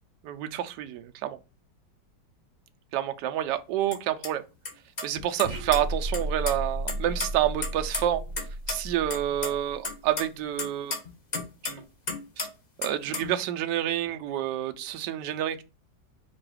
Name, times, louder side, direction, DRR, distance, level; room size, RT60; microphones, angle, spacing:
voice 1, 0.2-1.4 2.9-4.4 5.0-8.2 8.7-10.9 11.6-11.8 12.4-12.5 12.8-15.6, right 11 dB, 75° right, 1.1 m, -28 dB
sound 1, 3.9-4.0 4.2-4.3 4.6-4.7 5.0-5.8 6.1-6.5 6.9-8.4 8.7-8.8 9.1-9.5 9.8-11.8 12.1-12.5 12.8-13.3, left 3 dB, 60° left, 0.4 m, -32 dB
sound 2, 5.4-10.1, right 1 dB, 15° right, 0.7 m, -34 dB
4.6 x 2.3 x 4.7 m
omnidirectional pair, 2.0 m